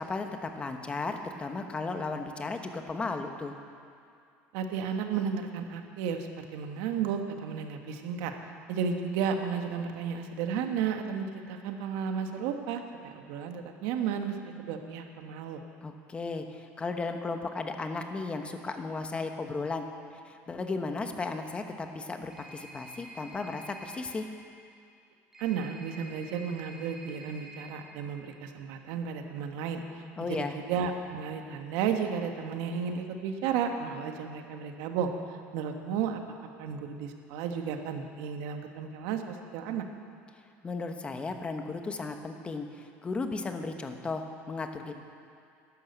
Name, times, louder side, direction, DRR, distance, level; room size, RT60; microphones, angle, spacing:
voice 1, 0.0-3.5 15.8-19.9 20.2-24.2 30.2-30.5 40.6-44.9, left 3 dB, 20° left, 6 dB, 1.1 m, -35 dB
voice 2, 4.5-8.3 8.7-15.6 25.4-30.0 30.3-35.1 35.5-36.2 36.6-39.9, right 7 dB, 80° right, 5 dB, 1.4 m, -33 dB
sound 1, 22.3-24.1 25.3-27.7, right 1 dB, 10° right, 3.3 m, -49 dB
12.0 x 11.0 x 8.0 m, 2.4 s
cardioid pair, 135°, 6 cm